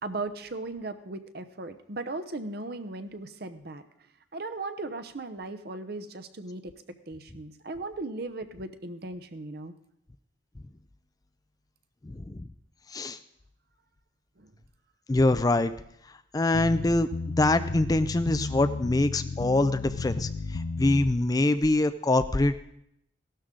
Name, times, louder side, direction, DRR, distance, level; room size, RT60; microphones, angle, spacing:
voice 1, 0.0-3.8 4.3-6.7 7.1-9.7 14.4-14.5, right 2 dB, 50° right, 10 dB, 0.9 m, -37 dB
voice 2, 12.0-12.4 12.9-13.2 15.1-15.7 16.3-17.1 17.4-22.7, left 2 dB, 20° left, 12 dB, 0.4 m, -24 dB
sound 1, 16.5-21.1, left 3 dB, 75° left, 0.6 m, -33 dB
16.0 x 12.0 x 3.8 m, 0.76 s
head